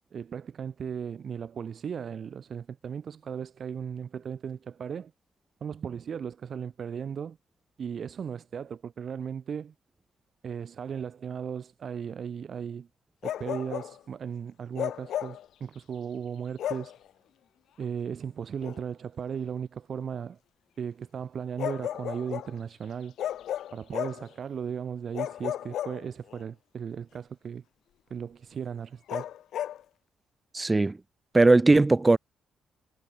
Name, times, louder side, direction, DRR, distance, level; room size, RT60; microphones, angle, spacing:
voice 1, 0.1-5.1 5.6-7.4 7.8-9.7 10.4-12.9 13.2-16.9 17.8-20.4 20.8-23.1 23.7-27.6 28.1-29.3, right 7 dB, 50° right, 1.5 m, -36 dB
Bark, 13.2-14.0 14.8-15.5 16.6-17.0 18.6-18.8 21.6-22.6 23.2-24.3 25.1-26.4 29.1-29.8, left 11 dB, 75° left, 0.6 m, -34 dB
voice 2, 30.5-31.0 31.3-32.2, right 2 dB, 20° right, 0.5 m, -19 dB
cardioid pair, 90°, 0 cm